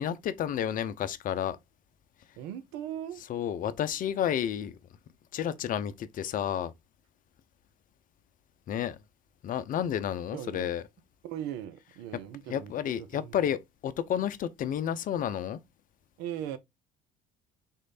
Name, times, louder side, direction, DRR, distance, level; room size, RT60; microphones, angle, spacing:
voice 1, 0.0-1.6 3.3-4.7 5.3-6.7 8.7-9.0 9.4-10.8 12.5-15.6, left 9 dB, 50° left, 0.6 m, -31 dB
voice 2, 2.4-3.2 10.3-10.7 11.2-13.4 16.2-16.6, right 10 dB, 70° right, 0.7 m, -39 dB
3.7 x 3.2 x 4.0 m
hypercardioid pair, 65°, 18 cm